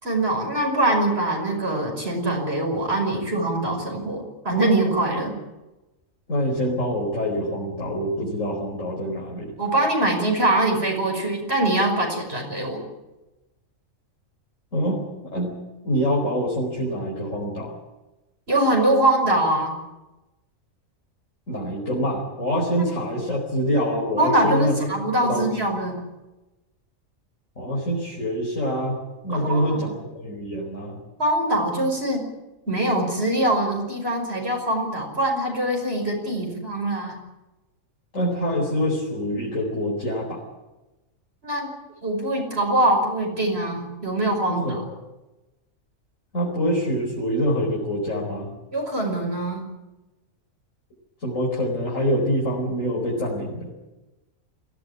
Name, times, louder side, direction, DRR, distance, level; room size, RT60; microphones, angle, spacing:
voice 1, 0.0-5.3 9.6-12.8 18.5-19.8 22.8-22.9 24.1-26.0 29.3-29.9 31.2-32.2 32.7-37.2 41.4-41.7 42.0-44.8 48.7-49.6, right 1 dB, 50° right, 1 dB, 5.9 m, -23 dB
voice 2, 6.3-9.5 14.7-15.6 15.8-17.7 21.5-24.9 25.2-25.5 27.6-29.0 29.2-29.9 30.2-31.0 38.1-40.4 44.5-45.0 46.3-48.5 51.2-53.7, equal, 75° left, -4 dB, 5.2 m, -25 dB
22.5 x 16.5 x 9.8 m, 1.0 s
omnidirectional pair, 1.3 m